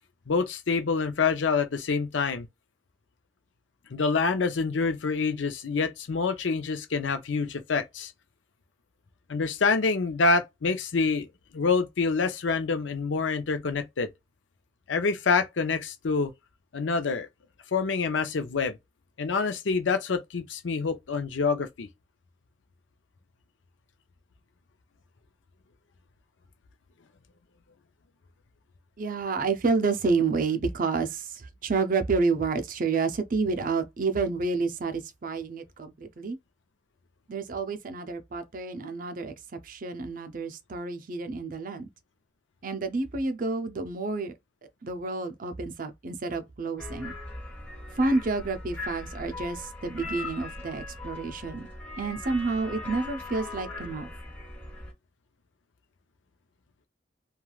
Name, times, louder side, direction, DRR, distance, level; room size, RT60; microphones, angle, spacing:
voice 1, 0.3-2.5 3.9-8.1 9.3-11.3 11.5-14.1 14.9-16.3 16.7-17.3 17.7-18.8 19.2-21.9, left 4 dB, 85° left, 0.6 m, -26 dB
voice 2, 29.0-36.4 37.3-39.3 39.6-41.9 42.6-44.3 44.8-47.1 48.0-51.7 52.0-54.1, right 4 dB, 45° right, 0.5 m, -29 dB
sound 1, 46.8-54.9, left 2 dB, 10° left, 1.1 m, -40 dB
3.1 x 2.3 x 2.3 m
head